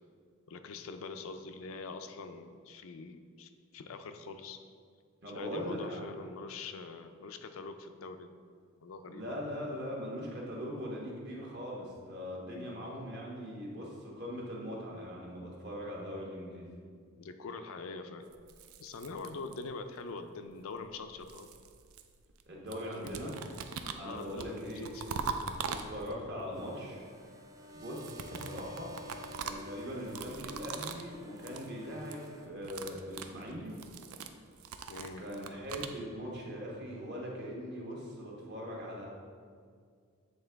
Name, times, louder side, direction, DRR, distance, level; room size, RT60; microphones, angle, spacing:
voice 1, 0.5-4.6 5.3-8.3 8.8-9.4 12.4-12.7 17.2-18.3 18.8-21.5 24.0-25.0 34.9-35.3, left 4 dB, 75° left, 8 dB, 0.4 m, -44 dB
voice 2, 5.2-6.0 9.0-16.7 22.5-23.3 23.9-25.2 25.7-27.0 27.7-28.9 29.4-33.8 35.2-39.1, equal, 50° right, -3 dB, 1.2 m, -41 dB
sound 1, 18.3-19.9 20.8-22.4 22.7-26.3 27.8-31.1 31.4-31.7 32.0-32.3 32.6-36.0, right 6 dB, 90° right, 0.4 m, -42 dB
sound 2, 26.5-32.5, left 1 dB, 15° right, 0.3 m, -51 dB
7.8 x 3.7 x 3.4 m, 2.1 s
head